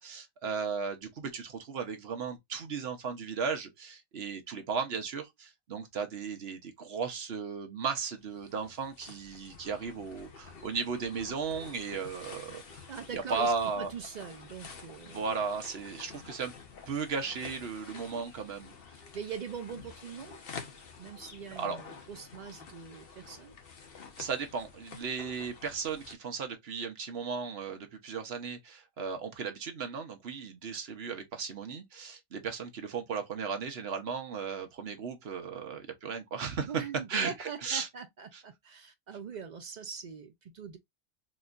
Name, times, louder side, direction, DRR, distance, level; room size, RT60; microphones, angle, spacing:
voice 1, 0.0-12.8 13.1-13.9 15.0-16.5 16.9-18.7 21.6-21.8 24.2-36.8 37.1-37.9 38.3-38.4, right 5 dB, 55° right, 1.1 m, -36 dB
sound 1, 8.2-26.1, left 5 dB, 50° left, 0.9 m, -49 dB
voice 2, 12.9-15.2 19.1-20.4 21.0-23.5 36.6-40.8, right 6 dB, 85° right, 0.4 m, -42 dB
4.2 x 2.7 x 2.4 m
omnidirectional pair, 1.4 m